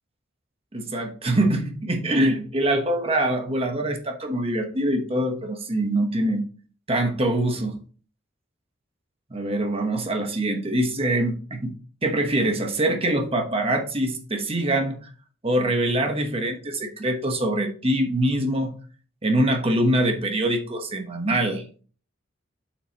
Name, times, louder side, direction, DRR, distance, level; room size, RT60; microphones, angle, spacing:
voice 1, 0.7-6.4 6.9-7.8 9.3-11.7 12.0-15.0 15.4-18.8 19.2-21.6, right 1 dB, 30° right, 4 dB, 1.1 m, -24 dB
7.7 x 6.1 x 3.0 m, 0.40 s
head